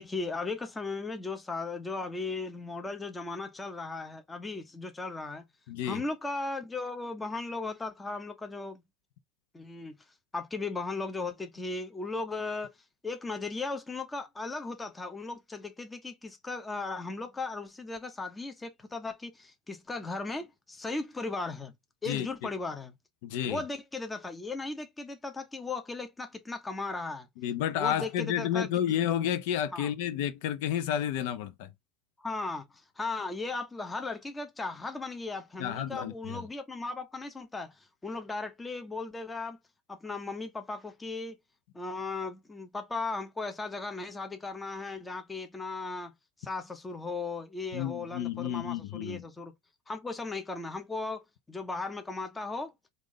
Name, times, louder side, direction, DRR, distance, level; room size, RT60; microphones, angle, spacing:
voice 1, 0.0-5.5 5.8-8.8 9.5-10.0 10.3-12.7 13.0-21.7 22.0-22.9 23.4-27.3 27.7-28.7 29.7-29.9 32.2-32.7 33.0-39.6 39.9-41.4 41.7-46.1 46.4-49.5 49.9-52.7, left 3 dB, 15° left, 0.8 m, -37 dB
voice 2, 5.7-6.0 22.1-22.3 23.2-23.6 27.4-31.7 35.6-36.5 47.7-49.2, left 10 dB, 65° left, 0.8 m, -31 dB
3.6 x 2.6 x 3.2 m
hypercardioid pair, 90°, 0 cm